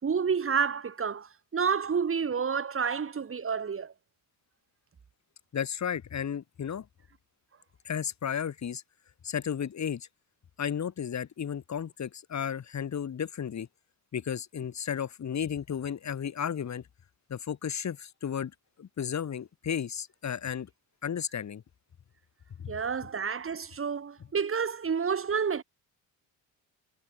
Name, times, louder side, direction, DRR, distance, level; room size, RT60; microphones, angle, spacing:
voice 1, 0.0-3.9 22.7-25.6, right 6 dB, 35° right, 3.8 m, -29 dB
voice 2, 5.5-6.9 7.8-8.8 9.2-10.1 10.6-13.7 14.1-16.8 17.3-18.5 18.8-20.7 21.0-21.6 22.6-22.7, left 8 dB, 50° left, 6.2 m, -33 dB
cardioid pair, 85°, 36 cm